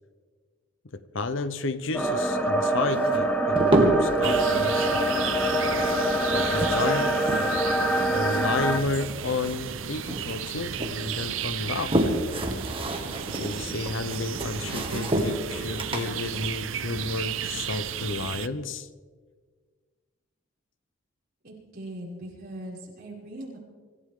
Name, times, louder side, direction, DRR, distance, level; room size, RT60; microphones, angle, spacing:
voice 1, 0.9-4.9 6.3-7.2 8.1-12.0 13.4-18.9, left 3 dB, 65° left, 0.8 m, -31 dB
sound 1, 1.9-8.8, right 1 dB, 5° left, 0.9 m, -24 dB
sound 2, 2.9-4.2 5.3-7.7 8.0-9.8 10.1-11.0 11.5-17.6, right 1 dB, 25° right, 1.8 m, -29 dB
sound 3, 4.2-18.5, right 8 dB, 70° right, 0.6 m, -34 dB
voice 2, 21.4-23.6, right 1 dB, 45° right, 6.2 m, -40 dB
25.5 x 15.0 x 3.7 m
head